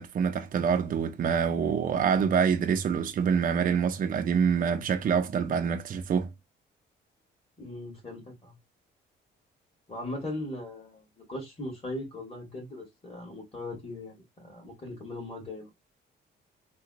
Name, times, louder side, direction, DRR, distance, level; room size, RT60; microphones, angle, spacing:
voice 1, 0.0-6.3, right 7 dB, 45° right, 0.5 m, -26 dB
voice 2, 7.6-8.5 9.9-15.7, left 1 dB, 30° left, 2.1 m, -39 dB
3.8 x 2.2 x 2.4 m
cardioid pair, 90°, 20 cm